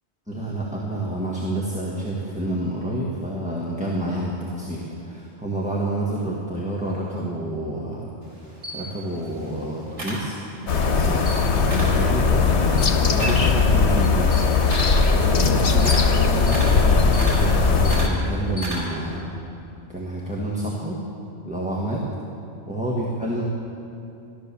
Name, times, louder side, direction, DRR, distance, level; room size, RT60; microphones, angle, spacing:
voice 1, 0.3-8.1 8.7-10.3 10.8-12.5 13.1-14.4 15.1-19.3 19.9-21.0 21.4-22.1 22.7-23.4, right 1 dB, 5° right, -5 dB, 1.6 m, -28 dB
Camera, 8.2-10.8 11.1-12.1 12.4-19.1, right 1 dB, 90° right, 4.3 m, -34 dB
sound 1, 10.7-18.1, left 5 dB, 75° left, 1.3 m, -19 dB
15.0 x 12.5 x 7.0 m, 2.7 s
omnidirectional pair, 1.2 m